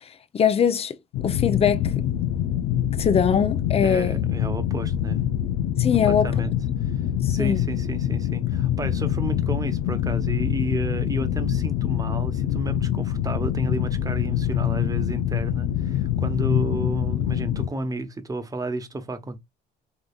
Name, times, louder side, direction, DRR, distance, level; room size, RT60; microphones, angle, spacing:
voice 1, 0.3-1.0 1.2-1.9 3.0-4.2 5.8-6.3 7.2-7.6, left 7 dB, 35° left, 0.7 m, -21 dB
sound 1, 1.1-17.7, left 11 dB, 85° left, 0.6 m, -25 dB
voice 2, 3.8-5.2 6.0-6.5 6.8-7.0 7.3-19.4, right 2 dB, 20° right, 1.1 m, -32 dB
5.1 x 3.9 x 2.4 m
cardioid pair, 110°, 17 cm